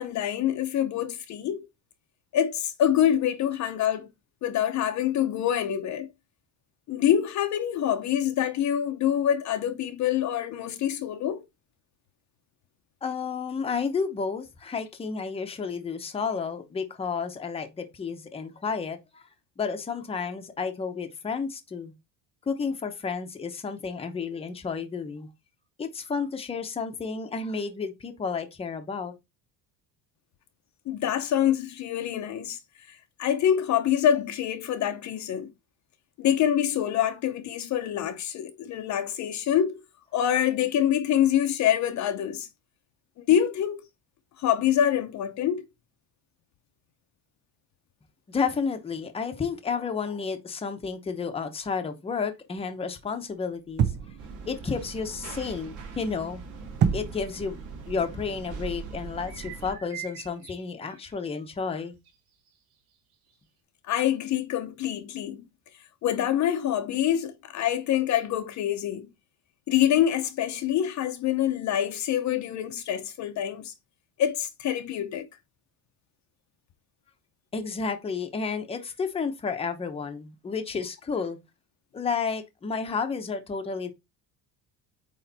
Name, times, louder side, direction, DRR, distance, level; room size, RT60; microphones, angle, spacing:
voice 1, 0.0-1.7 2.3-4.1 4.4-6.1 6.9-11.4 30.9-32.6 32.9-35.5 36.2-39.8 40.1-42.5 43.2-43.8 44.4-45.6 63.9-65.4 66.0-69.1 69.7-73.7 74.2-75.3, left 10 dB, 45° left, 0.7 m, -26 dB
voice 2, 13.0-19.2 19.6-21.9 22.5-25.3 25.8-29.1 48.3-53.8 54.5-56.4 56.9-57.6 57.9-61.9 77.5-81.4 81.9-83.9, left 5 dB, 15° left, 0.8 m, -31 dB
sound 1, 53.8-54.3 56.8-57.3, right 8 dB, 30° right, 0.4 m, -25 dB
sound 2, 54.2-59.7, right 4 dB, 50° right, 2.4 m, -41 dB
sound 3, 59.1-61.2 61.7-62.2 62.5-62.6 63.3-63.4, right 11 dB, 85° right, 2.6 m, -44 dB
8.8 x 3.2 x 4.0 m
cardioid pair, 165°, 38 cm